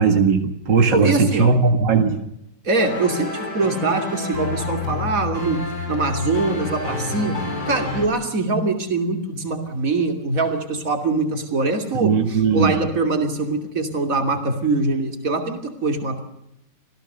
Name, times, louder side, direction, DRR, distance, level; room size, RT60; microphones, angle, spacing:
voice 1, 0.0-2.2 12.0-12.7, right 5 dB, 85° right, 5 dB, 2.7 m, -18 dB
voice 2, 0.9-1.5 2.6-16.2, right 3 dB, 50° right, 5 dB, 3.3 m, -23 dB
sound 1, 2.8-8.1, left 3 dB, 60° left, 5.1 m, -28 dB
26.5 x 16.5 x 6.8 m, 0.83 s
omnidirectional pair, 1.9 m